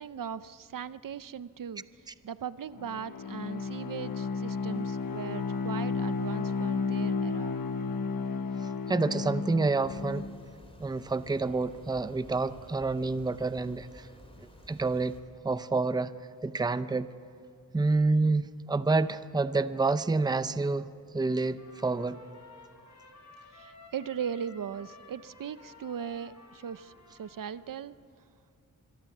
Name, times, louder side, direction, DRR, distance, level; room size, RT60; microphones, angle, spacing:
voice 1, 0.0-1.8 2.2-7.5 23.5-27.9, right 8 dB, 70° right, 15 dB, 0.7 m, -39 dB
Bowed string instrument, 2.7-10.5, left 4 dB, 90° left, 1.2 m, -33 dB
voice 2, 8.9-10.3 10.8-14.1 14.7-15.2 15.4-16.1 16.4-17.1 17.7-20.9 21.1-22.2, right 3 dB, 10° right, 13 dB, 0.6 m, -28 dB
sound 1, 9.8-15.2, left 1 dB, 15° left, 3.5 m, -52 dB
Trumpet, 21.2-27.8, left 2 dB, 55° left, 5.3 m, -54 dB
25.5 x 22.0 x 7.3 m, 2.4 s
wide cardioid pair, 130°, 34 cm